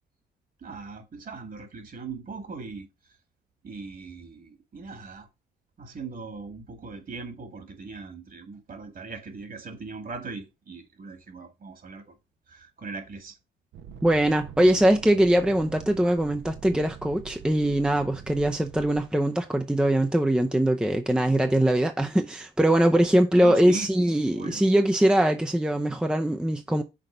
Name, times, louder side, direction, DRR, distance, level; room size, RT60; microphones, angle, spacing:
voice 1, 0.6-2.9 3.6-5.3 5.8-12.1 12.5-13.3 23.4-24.6, right 4 dB, 45° right, 2.0 m, -39 dB
sound 1, 13.7-19.1, right 8 dB, 70° right, 1.0 m, -44 dB
voice 2, 14.0-26.8, right 1 dB, 5° right, 0.6 m, -22 dB
6.0 x 4.0 x 5.0 m
cardioid pair, 90°, 20 cm